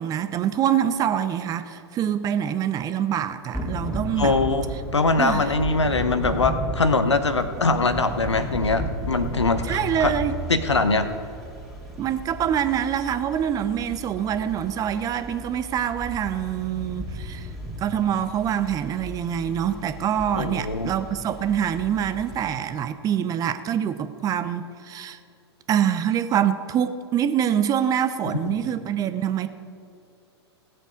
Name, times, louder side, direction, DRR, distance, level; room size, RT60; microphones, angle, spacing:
voice 1, 0.0-4.4 5.2-5.4 9.7-10.3 12.0-17.5 17.8-25.2 25.7-29.5, right 9 dB, 25° right, 11 dB, 0.7 m, -25 dB
Thunder / Rain, 3.5-22.6, equal, ahead, 2.6 m, -35 dB
voice 2, 4.2-4.6 4.9-10.2 10.5-11.1 20.3-20.9 28.2-28.6, left 3 dB, 85° left, 9 dB, 0.9 m, -22 dB
16.5 x 7.7 x 5.1 m, 2.5 s
figure-of-eight pair, 105°, 14 cm